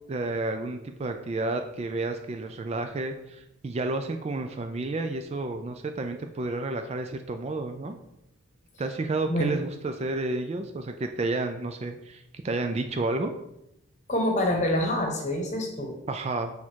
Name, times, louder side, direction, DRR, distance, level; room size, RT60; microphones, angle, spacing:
voice 1, 0.1-7.9 8.8-13.3 16.1-16.5, right 2 dB, 30° right, 6 dB, 0.3 m, -31 dB
voice 2, 14.1-16.0, left 1 dB, 35° left, 2 dB, 1.0 m, -26 dB
6.4 x 3.6 x 4.5 m, 0.85 s
head